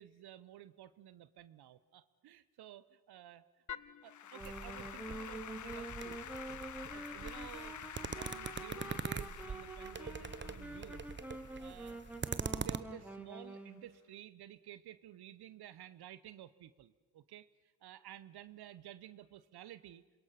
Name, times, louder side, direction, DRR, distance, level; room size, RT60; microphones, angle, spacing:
voice 1, 0.0-3.6 4.0-6.2 6.8-11.1 11.6-12.0 12.6-20.0, right 12 dB, 65° right, 15 dB, 0.9 m, -53 dB
Applause / Keyboard (musical), 3.7-13.0, left 9 dB, 45° left, 0.8 m, -49 dB
Wind instrument woodwind instrument, 4.2-13.9, right 2 dB, 5° right, 2.8 m, -47 dB
sound 1, 4.4-12.8, right 5 dB, 25° right, 1.0 m, -43 dB
28.0 x 22.0 x 5.8 m, 1.3 s
hypercardioid pair, 40°, 41 cm